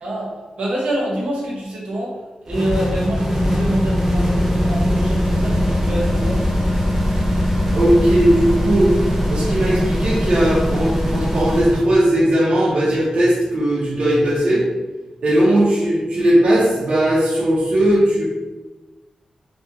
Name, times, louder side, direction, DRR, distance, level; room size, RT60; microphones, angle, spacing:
voice 1, 0.0-6.4, right 1 dB, 90° right, -4 dB, 1.0 m, -26 dB
sound 1, 2.5-11.8, equal, 10° right, 0.6 m, -20 dB
voice 2, 7.7-8.9 9.3-14.6 15.2-18.2, right 1 dB, 65° right, -8 dB, 0.8 m, -17 dB
3.5 x 2.4 x 2.9 m, 1.2 s
wide cardioid pair, 140°, 2 cm